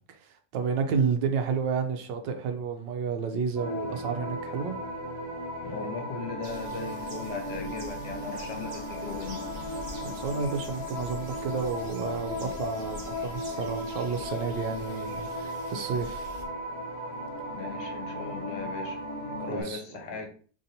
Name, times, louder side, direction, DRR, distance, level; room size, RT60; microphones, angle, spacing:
voice 1, 0.1-4.8 10.0-16.3 19.4-20.2, right 6 dB, 90° right, 1.3 m, -31 dB
sound 1, 3.6-19.6, equal, 50° left, 1.6 m, -36 dB
voice 2, 5.6-9.4 17.5-19.0 19.4-20.3, left 5 dB, 75° left, 1.4 m, -38 dB
sound 2, 6.4-16.4, equal, 70° right, 0.4 m, -46 dB
3.4 x 2.6 x 4.1 m
omnidirectional pair, 1.9 m